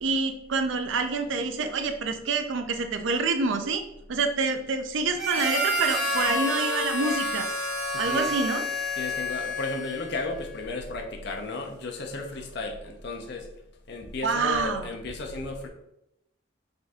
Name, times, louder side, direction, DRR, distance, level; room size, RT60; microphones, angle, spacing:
voice 1, 0.0-3.8 4.1-7.5 8.0-8.6 14.2-14.9, right 4 dB, 65° right, 7 dB, 0.5 m, -27 dB
Harmonica, 5.2-10.2, left 1 dB, ahead, 0.9 m, -29 dB
voice 2, 7.9-8.3 8.9-13.5 13.9-15.7, left 2 dB, 55° left, 3 dB, 0.6 m, -34 dB
5.1 x 2.6 x 3.6 m, 0.81 s
head